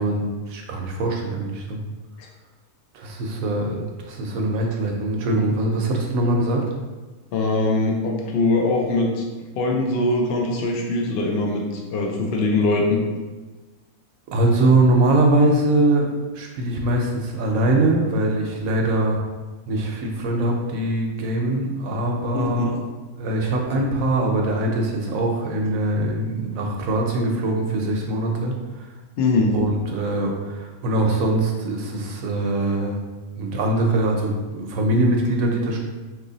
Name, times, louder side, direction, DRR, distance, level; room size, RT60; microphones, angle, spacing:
voice 1, 0.0-1.8 2.9-6.6 14.3-19.3 19.7-22.8 23.2-28.5 28.8-28.9 29.5-33.0 33.4-35.8, right 1 dB, 75° right, 1 dB, 1.0 m, -22 dB
voice 2, 7.3-9.3 9.6-13.0 22.3-22.7 29.2-29.5, left 2 dB, 65° left, 0 dB, 0.6 m, -22 dB
3.0 x 2.7 x 3.8 m, 1.2 s
omnidirectional pair, 1.5 m